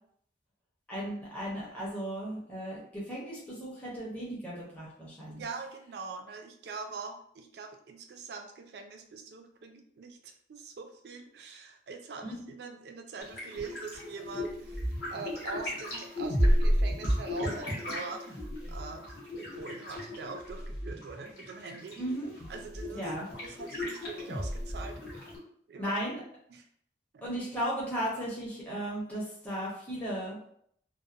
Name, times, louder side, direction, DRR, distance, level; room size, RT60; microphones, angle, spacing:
voice 1, 0.9-5.5 12.2-12.3 22.0-22.3 22.9-23.3 25.8-26.2 27.2-30.4, equal, 10° left, -7 dB, 0.6 m, -36 dB
voice 2, 5.3-14.8 15.1-19.1 19.4-22.0 22.5-23.1 23.4-25.3 25.7-26.0 26.5-26.6 27.1-27.2, right 4 dB, 60° right, 5 dB, 0.3 m, -43 dB
sound 1, 13.2-25.4, equal, 60° left, 0.9 m, -32 dB
2.7 x 2.0 x 2.3 m, 0.67 s
head